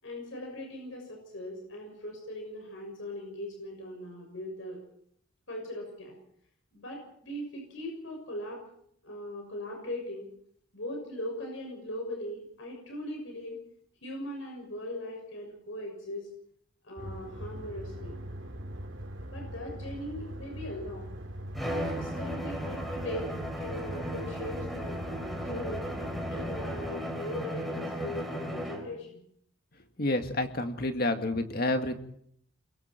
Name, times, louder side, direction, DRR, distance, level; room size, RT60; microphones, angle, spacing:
voice 1, 0.0-4.8 5.5-6.2 6.7-8.6 9.0-10.3 10.7-13.6 14.0-16.3 16.8-18.2 19.3-21.1 21.6-25.9 26.3-29.2, left 1 dB, 75° left, 1 dB, 6.6 m, -40 dB
sound 1, 17.0-26.9, right 1 dB, 65° right, 2.8 m, -41 dB
Bowed string instrument, 21.5-29.0, equal, ahead, 3.6 m, -36 dB
voice 2, 30.0-31.9, left 2 dB, 50° left, 6 dB, 2.0 m, -29 dB
29.0 x 22.5 x 4.5 m, 0.66 s
head